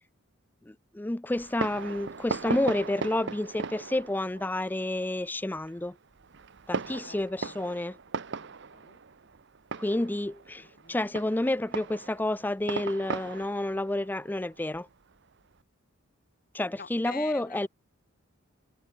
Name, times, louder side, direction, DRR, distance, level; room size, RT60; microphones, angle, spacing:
voice 1, 0.7-6.0 6.7-7.9 9.8-14.9 16.5-17.7, left 1 dB, 10° left, 0.4 m, -30 dB
Fireworks, 1.4-15.5, right 4 dB, 55° right, 0.7 m, -39 dB
voice 2, 7.1-7.6 8.4-9.0 10.6-11.0 16.8-17.7, left 5 dB, 45° left, 2.6 m, -46 dB
head